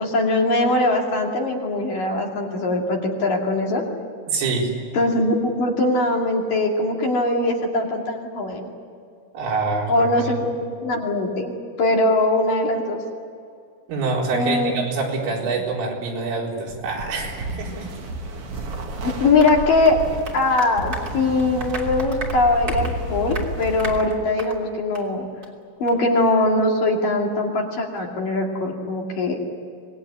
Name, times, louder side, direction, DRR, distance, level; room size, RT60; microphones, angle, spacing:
voice 1, 0.0-3.8 4.9-8.7 9.9-10.5 10.8-13.0 14.3-14.7 19.2-20.0 20.3-25.3 25.8-29.4, left 2 dB, 50° left, 0 dB, 3.8 m, -21 dB
voice 2, 4.3-4.7 9.3-10.3 13.9-17.9, right 4 dB, 80° right, -2 dB, 6.8 m, -26 dB
sound 1, 16.7-24.0, right 2 dB, 45° right, 2.0 m, -31 dB
Applause, 19.4-24.6 24.9-25.1 25.4-25.5 25.9-26.0, right 2 dB, 25° right, 2.6 m, -36 dB
26.0 x 20.5 x 9.6 m, 2.3 s
omnidirectional pair, 5.6 m